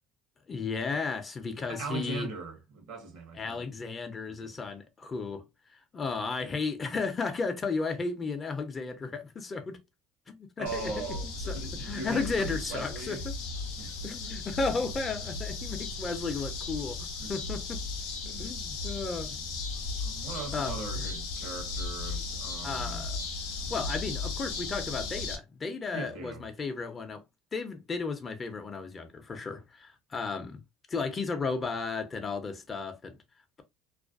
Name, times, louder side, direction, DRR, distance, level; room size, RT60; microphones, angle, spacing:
voice 1, 0.5-2.3 3.3-5.5 5.9-9.8 10.3-11.0 11.5-13.3 14.0-17.9 18.2-19.4 20.5-21.1 22.6-23.2 23.7-27.2 27.5-30.6 30.9-33.2, left 4 dB, 30° left, 0.6 m, -34 dB
voice 2, 1.7-3.6 4.4-4.5 10.6-13.2 13.8-14.1 17.2-17.3 20.0-23.0 23.6-23.9 25.9-26.4, right 3 dB, 70° right, 0.9 m, -40 dB
sound 1, 10.7-25.4, left 3 dB, 90° left, 0.5 m, -36 dB
2.4 x 2.2 x 2.4 m
supercardioid pair, 90°, 0 cm